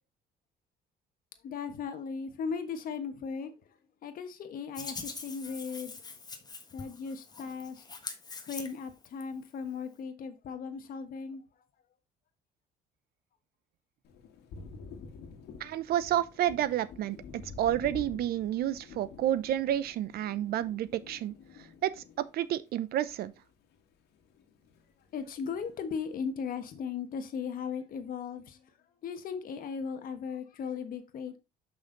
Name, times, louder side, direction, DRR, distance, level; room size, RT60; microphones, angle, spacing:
voice 1, 1.4-3.5 4.0-6.0 6.7-7.8 8.5-11.4 25.1-28.7 29.0-31.4, left 6 dB, 55° left, 1.4 m, -37 dB
Hands, 4.7-9.2, left 4 dB, 25° left, 1.3 m, -43 dB
Thunder, 14.0-23.8 24.1-25.3, left 5 dB, 75° left, 1.8 m, -49 dB
voice 2, 15.6-23.3, right 12 dB, 65° right, 0.7 m, -30 dB
6.3 x 5.7 x 3.9 m
cardioid pair, 110°, 17 cm